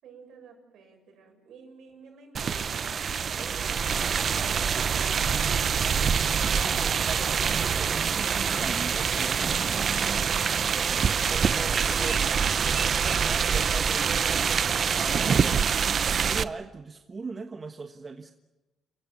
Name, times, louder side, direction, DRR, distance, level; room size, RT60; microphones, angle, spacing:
voice 1, 0.0-2.7, right 5 dB, 75° right, 4 dB, 7.2 m, -52 dB
sound 1, 2.3-16.4, right 7 dB, 50° right, 0.8 m, -25 dB
voice 2, 3.4-3.8 5.8-10.3 11.1-15.2 16.2-18.3, right 4 dB, 35° right, 7 dB, 1.3 m, -41 dB
Keys jangling, 5.9-6.8 7.3-7.8 8.5-12.2 12.9-13.9, left 3 dB, 35° left, 5.2 m, -49 dB
28.5 x 15.0 x 9.6 m, 1.1 s
cardioid pair, 90°, 0 cm